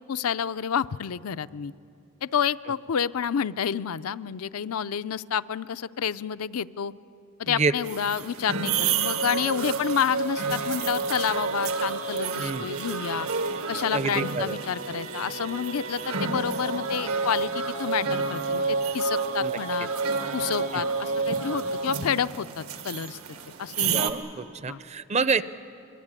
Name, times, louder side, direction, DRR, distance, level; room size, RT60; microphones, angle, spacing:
voice 1, 0.1-1.7 2.2-6.9 7.4-13.3 13.7-19.9 20.3-23.2 23.6-24.0 24.7-24.8, left 7 dB, 85° left, 14 dB, 0.5 m, -29 dB
sound 1, 7.8-24.1, right 4 dB, 80° right, 1.7 m, -29 dB
voice 2, 12.4-12.7 13.9-14.6 19.4-19.5 19.8-19.9 20.7-20.8 23.8-25.4, right 4 dB, 30° right, 14 dB, 0.6 m, -28 dB
23.5 x 23.0 x 8.9 m, 2.6 s
head